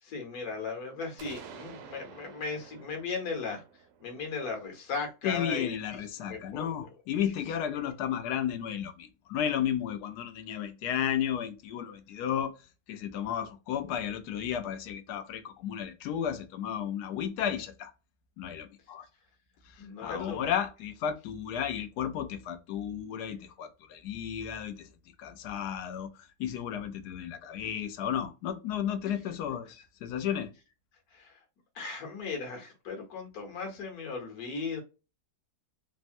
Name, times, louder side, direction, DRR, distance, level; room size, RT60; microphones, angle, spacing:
voice 1, 0.0-3.6 4.0-5.8 6.2-6.9 19.8-20.5 31.1-31.4 31.7-34.8, left 4 dB, 70° left, 1.5 m, -37 dB
sound 1, 1.2-5.0, right 7 dB, 90° right, 1.1 m, -50 dB
voice 2, 5.2-12.6 12.9-17.9 18.4-19.1 19.7-24.9 25.2-30.5, left 9 dB, 90° left, 1.2 m, -33 dB
3.4 x 2.1 x 2.5 m
omnidirectional pair, 1.7 m